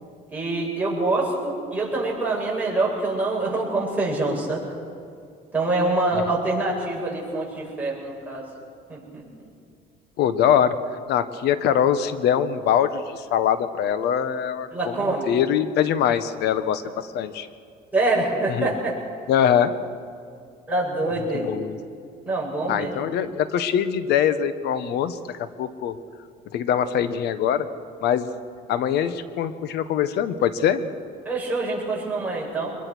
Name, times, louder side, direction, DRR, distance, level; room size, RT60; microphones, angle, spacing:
voice 1, 0.3-4.6 5.5-8.5 8.9-9.2 14.7-15.3 17.9-18.9 20.7-21.5 22.3-23.0 31.2-32.8, right 2 dB, 10° right, -5 dB, 7.7 m, -25 dB
voice 2, 10.2-17.5 18.5-18.7 19.3-19.7 21.3-21.8 22.7-25.2 25.6-26.0 26.5-27.7 28.0-28.3 28.7-30.9, left 9 dB, 80° left, 12 dB, 1.3 m, -23 dB
23.5 x 21.5 x 6.2 m, 2.3 s
cardioid pair, 110°, 17 cm